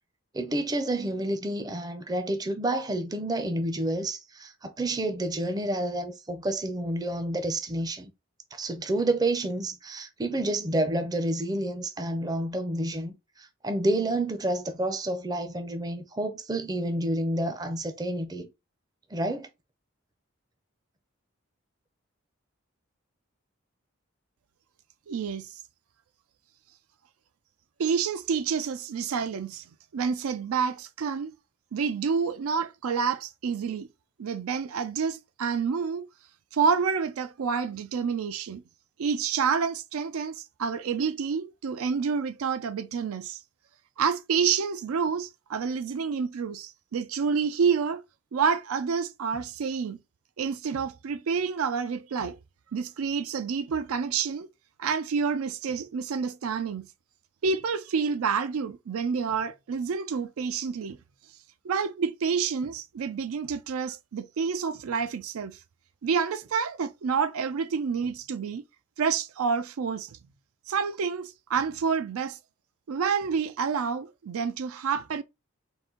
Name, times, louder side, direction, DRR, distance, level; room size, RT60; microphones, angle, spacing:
voice 1, 0.3-8.1 8.5-18.5 19.1-19.5, right 1 dB, 20° right, 0.5 m, -29 dB
voice 2, 25.1-25.5 27.8-29.6 29.9-31.3 31.7-33.9 34.2-36.1 36.5-38.6 39.0-43.4 44.0-48.0 48.3-50.0 50.4-52.4 52.7-54.5 54.8-56.9 57.4-61.0 61.6-65.6 66.0-68.6 69.0-70.2 70.7-72.4 72.9-75.2, right 6 dB, 85° right, 0.4 m, -28 dB
3.9 x 2.5 x 3.8 m
head